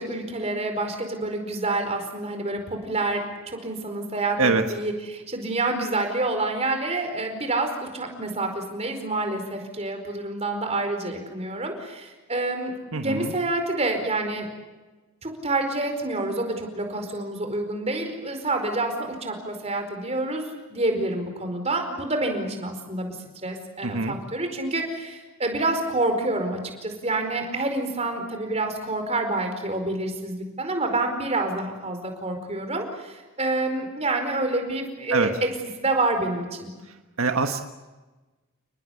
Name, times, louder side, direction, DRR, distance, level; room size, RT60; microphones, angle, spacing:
voice 1, 0.0-14.5 15.2-23.2 23.4-35.5 35.8-36.7, right 2 dB, 30° right, 5 dB, 4.8 m, -28 dB
voice 2, 12.9-13.3 23.8-24.1 35.1-35.3 37.2-37.6, right 4 dB, 75° right, 6 dB, 1.5 m, -23 dB
30.0 x 20.0 x 8.4 m, 1.2 s
head